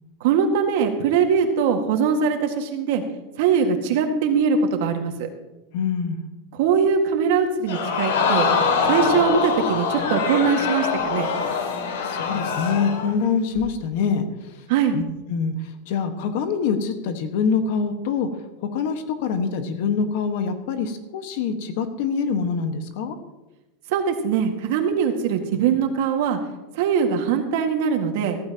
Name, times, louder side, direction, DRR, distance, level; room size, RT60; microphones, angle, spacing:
voice 1, 0.2-3.0 3.4-5.3 6.5-8.5 8.9-11.3 14.7-15.0 23.9-26.4 26.7-28.4, right 6 dB, 60° right, 4 dB, 1.8 m, -21 dB
voice 2, 5.7-6.2 12.0-14.5 14.9-15.0 15.3-18.3 18.6-23.2, left 6 dB, 60° left, 7 dB, 1.4 m, -25 dB
Crowd, 7.7-13.1 13.6-13.7, left 5 dB, 85° left, 2.3 m, -23 dB
15.0 x 14.5 x 2.9 m, 1.0 s
supercardioid pair, 160°, 0 cm